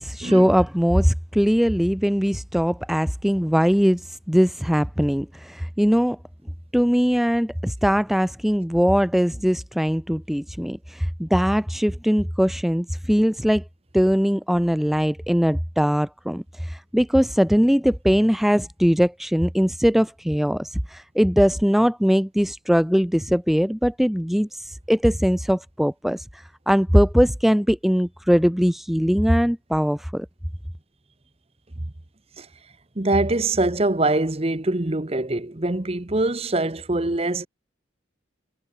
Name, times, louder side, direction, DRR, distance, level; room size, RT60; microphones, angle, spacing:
voice 1, 0.0-6.2 6.7-13.6 13.9-30.3, equal, ahead, 0.4 m, -21 dB
voice 2, 33.0-37.5, right 2 dB, 30° right, 1.0 m, -23 dB
head